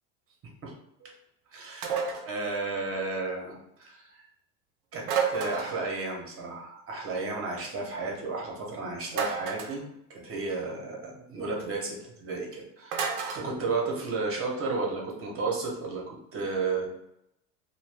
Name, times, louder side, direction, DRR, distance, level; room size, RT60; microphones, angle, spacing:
voice 1, 1.5-4.3 4.9-9.8 10.1-16.9, right 3 dB, 30° right, -1 dB, 1.0 m, -33 dB
sound 1, 1.8-2.3 5.0-5.9 9.1-9.8 12.9-13.5, right 6 dB, 55° right, 0.7 m, -30 dB
2.6 x 2.3 x 3.4 m, 0.80 s
supercardioid pair, 110°, 42 cm